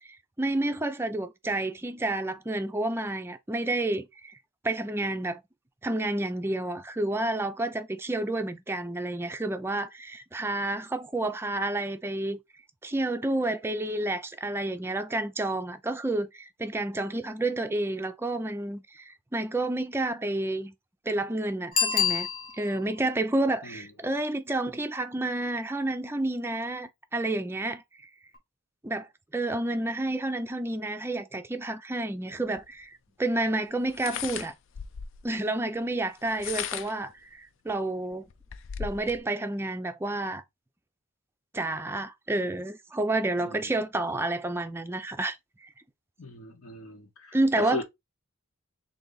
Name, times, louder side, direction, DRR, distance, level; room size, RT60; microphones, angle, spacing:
voice 1, 0.0-4.3 4.6-5.4 5.8-12.4 12.8-20.7 21.1-22.3 22.6-27.8 28.8-29.1 29.3-34.5 35.2-38.3 38.8-40.4 41.5-45.4 45.6-45.7 47.3-47.8, right 2 dB, 10° right, 0.4 m, -30 dB
Bicycle bell, 21.7-22.9 28.3-28.4, left 7 dB, 40° left, 0.9 m, -27 dB
sound 1, 32.6-32.7 33.9-35.3 36.2-37.1 37.7-37.8 38.1-39.2, left 8 dB, 60° left, 0.4 m, -36 dB
voice 2, 46.2-47.8, left 2 dB, 80° left, 1.1 m, -38 dB
3.8 x 2.7 x 3.9 m
head